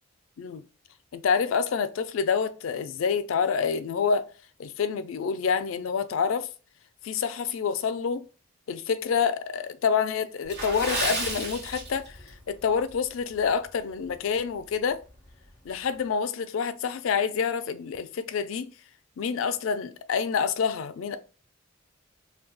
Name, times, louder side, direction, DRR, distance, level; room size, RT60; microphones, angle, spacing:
voice 1, 1.1-4.3 4.6-6.5 7.0-8.2 8.7-12.1 12.5-15.0 15.7-18.7 19.2-21.2, left 6 dB, 70° left, 0.4 m, -27 dB
Water / Splash splatter, 10.4-12.4 12.7-12.9 13.5-13.7 14.1-14.2, right 2 dB, 50° right, 1.5 m, -32 dB
2.8 x 2.2 x 3.8 m
head